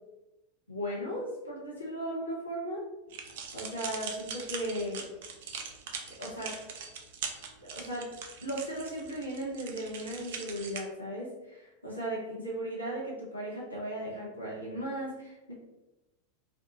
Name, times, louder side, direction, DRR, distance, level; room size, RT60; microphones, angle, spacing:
voice 1, 0.7-2.9 3.5-5.1 6.1-6.6 7.6-8.1 8.4-15.5, right 1 dB, 85° left, -4 dB, 0.7 m, -36 dB
sound 1, 3.1-10.8, right 6 dB, 60° right, 0.4 m, -41 dB
2.5 x 2.3 x 2.7 m, 1.0 s
figure-of-eight pair, 85°, 0 cm